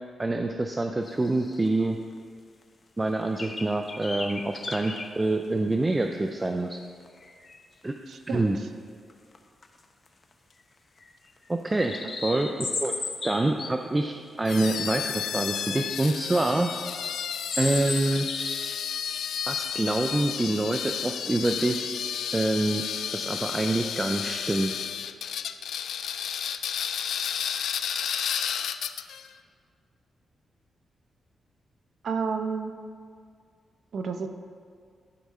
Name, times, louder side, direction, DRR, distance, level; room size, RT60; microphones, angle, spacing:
voice 1, 0.2-2.0 3.0-6.8 7.8-7.9 8.3-8.6 11.5-11.9 12.2-12.9 13.2-16.7 17.6-18.3 19.5-21.9 22.3-22.8 23.1-24.8, right 2 dB, 20° right, 4 dB, 0.4 m, -26 dB
sound 1, 1.1-1.7 2.1-2.2 2.6-2.7 3.4-5.1 5.7-5.8 7.0-7.7 9.1-9.4 9.6-9.7 10.1-10.5 11.0-13.7 14.7-14.9 15.2-15.9 16.4-16.5 17.1-18.8 19.1-19.4, left 3 dB, 35° left, 0.7 m, -35 dB
voice 2, 8.1-8.4 32.0-32.7 33.9-34.3, right 5 dB, 65° right, 5 dB, 0.6 m, -30 dB
sound 2, 14.4-29.3, left 8 dB, 90° left, 0.3 m, -32 dB
11.5 x 4.8 x 4.2 m, 2.2 s
wide cardioid pair, 125°, 0 cm